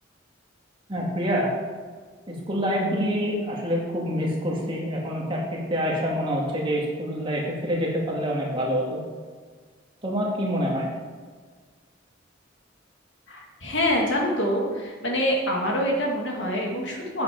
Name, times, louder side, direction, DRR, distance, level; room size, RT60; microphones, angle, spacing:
voice 1, 0.9-1.5 2.3-9.0 10.0-10.9, equal, 25° right, -3 dB, 2.0 m, -26 dB
voice 2, 13.3-17.2, equal, 65° left, -1 dB, 2.2 m, -25 dB
8.3 x 7.9 x 5.2 m, 1.5 s
head